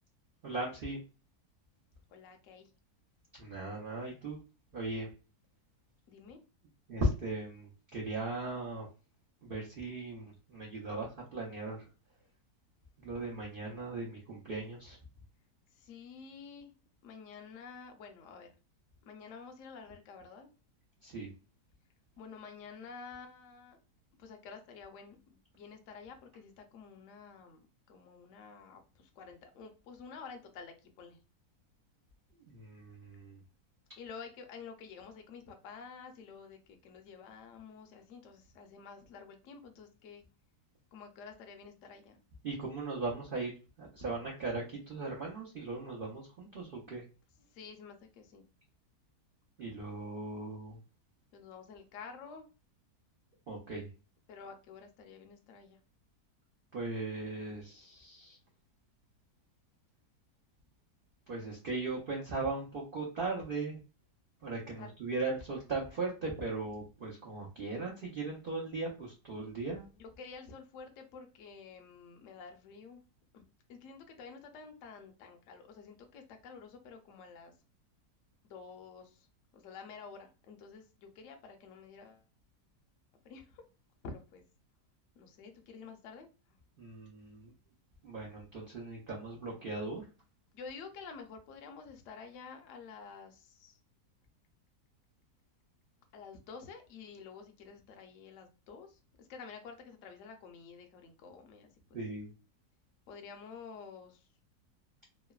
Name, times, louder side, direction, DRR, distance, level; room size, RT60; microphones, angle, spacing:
voice 1, 0.4-1.0 3.4-4.4 4.7-5.1 6.9-8.9 9.4-11.8 13.0-15.0 21.0-21.3 32.5-33.4 42.4-43.5 43.8-47.0 49.6-50.8 53.5-53.9 56.7-58.4 61.3-63.8 64.4-69.9 86.8-87.5 88.0-90.0 101.9-102.3, right 2 dB, 75° right, -3 dB, 0.5 m, -38 dB
voice 2, 2.1-2.7 6.1-6.4 15.7-16.7 17.0-18.5 19.0-20.5 22.2-23.8 24.2-27.6 27.9-31.2 34.0-40.2 40.9-42.2 47.4-48.5 51.3-52.5 54.3-55.8 64.8-64.9 69.9-73.0 73.3-77.5 78.4-79.3 79.5-82.2 83.2-83.6 84.0-84.4 85.1-86.3 90.5-93.8 96.1-101.7 103.1-104.3, left 5 dB, 65° left, 4 dB, 0.8 m, -50 dB
3.0 x 2.0 x 2.2 m, 0.33 s
omnidirectional pair, 1.8 m